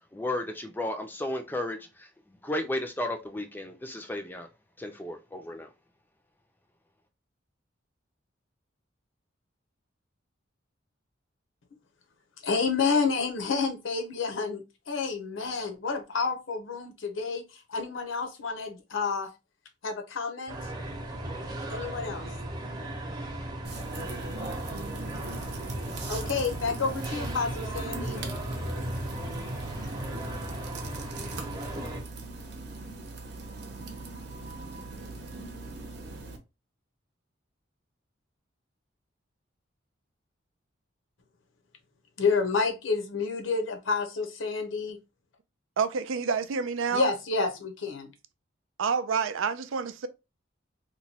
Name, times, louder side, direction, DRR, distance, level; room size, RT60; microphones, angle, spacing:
voice 1, 0.1-2.1 2.4-4.5 4.8-5.7, left 1 dB, 10° left, 0.4 m, -33 dB
voice 2, 12.4-17.4 17.7-19.3 19.8-20.6 21.7-22.3 26.1-28.4 42.2-45.0 46.9-48.1, left 4 dB, 80° left, 0.7 m, -29 dB
sound 1, 20.5-32.0, right 1 dB, 20° right, 0.7 m, -36 dB
sound 2, 23.6-36.4, right 3 dB, 55° right, 0.8 m, -41 dB
voice 3, 45.8-47.1 48.8-50.1, right 5 dB, 85° right, 0.4 m, -28 dB
3.0 x 2.2 x 4.1 m
head